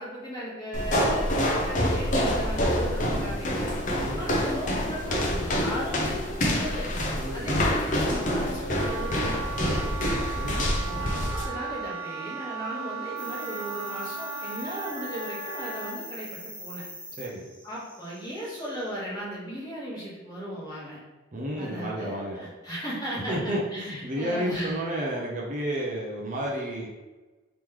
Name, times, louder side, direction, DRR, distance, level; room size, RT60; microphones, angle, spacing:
voice 1, 0.0-3.7 4.1-6.9 7.3-9.7 10.9-16.8 17.6-21.0 21.6-24.8, equal, 20° left, -7 dB, 1.1 m, -36 dB
sound 1, 0.7-11.5, equal, 40° left, 0.5 m, -27 dB
voice 2, 4.0-4.3 7.1-7.5 10.3-11.3 17.2-17.4 21.3-22.4 23.3-26.9, equal, 40° right, -2 dB, 0.5 m, -32 dB
Wind instrument woodwind instrument, 8.4-16.0, right 5 dB, 90° right, 0.7 m, -36 dB
sound 2, 13.2-18.9, equal, 15° right, 1.4 m, -43 dB
3.1 x 3.0 x 3.6 m, 1.2 s
head